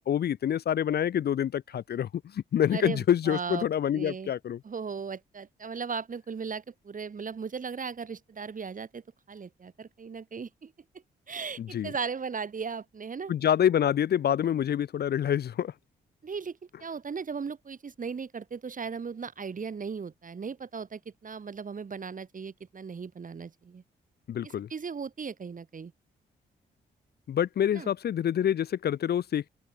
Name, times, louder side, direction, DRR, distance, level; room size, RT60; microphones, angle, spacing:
voice 1, 0.1-4.6 11.6-11.9 13.3-15.7 24.3-24.7 27.3-29.4, left 10 dB, 60° left, 0.6 m, -27 dB
voice 2, 2.7-3.7 3.9-4.3 4.6-9.0 9.3-10.7 11.3-13.3 16.2-23.8 24.4-25.9 27.7-27.9, right 5 dB, 45° right, 2.6 m, -37 dB
open air
cardioid pair, 70°, 19 cm